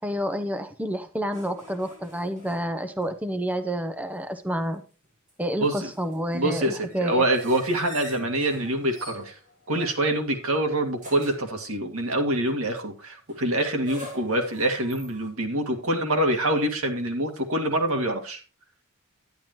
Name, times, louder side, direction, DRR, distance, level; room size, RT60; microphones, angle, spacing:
voice 1, 0.0-4.8 5.4-7.2, equal, 5° right, 9 dB, 0.7 m, -29 dB
sound 1, 1.3-3.2 3.5-3.6 5.0-10.4 11.0-11.6 13.3-15.3, left 1 dB, 40° right, 5.8 m, -45 dB
voice 2, 6.3-9.4 9.7-18.4, right 1 dB, 85° right, 4 dB, 2.0 m, -25 dB
10.5 x 10.5 x 3.1 m, 0.34 s
head